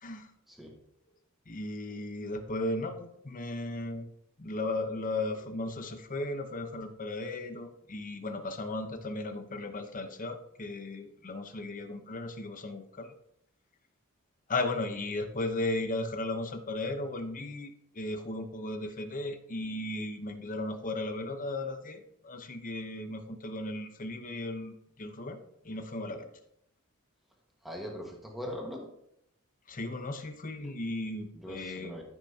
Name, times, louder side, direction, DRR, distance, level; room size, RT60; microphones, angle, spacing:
voice 1, 1.5-4.1 4.4-13.1 14.5-25.4 25.6-26.3 29.7-32.0, left 2 dB, 40° left, 7 dB, 0.9 m, -36 dB
voice 2, 27.6-28.9 30.6-30.7 31.3-32.0, equal, ahead, -1 dB, 1.6 m, -41 dB
13.5 x 6.0 x 2.8 m, 0.75 s
head